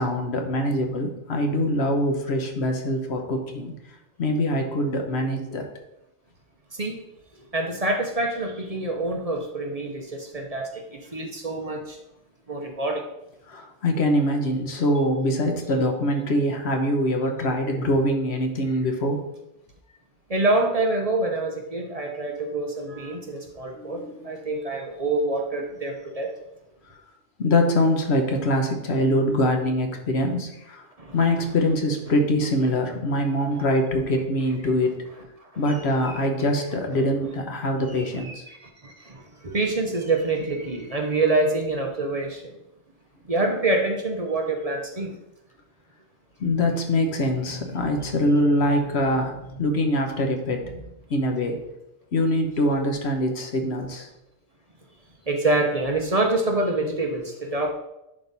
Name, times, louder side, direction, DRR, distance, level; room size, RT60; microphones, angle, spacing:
voice 1, 0.0-3.7 4.2-5.6 13.5-19.2 23.8-24.1 27.4-30.8 31.1-34.9 35.6-38.4 46.4-50.8 51.1-51.6 52.1-54.1, left 1 dB, 70° left, 3 dB, 1.3 m, -23 dB
voice 2, 7.5-12.0 12.5-13.0 20.3-26.3 31.0-31.2 33.5-33.6 35.4-36.8 37.9-42.6 43.3-45.1 55.3-57.7, right 2 dB, 35° right, 2 dB, 0.9 m, -26 dB
11.0 x 3.9 x 4.0 m, 0.88 s
omnidirectional pair, 1.2 m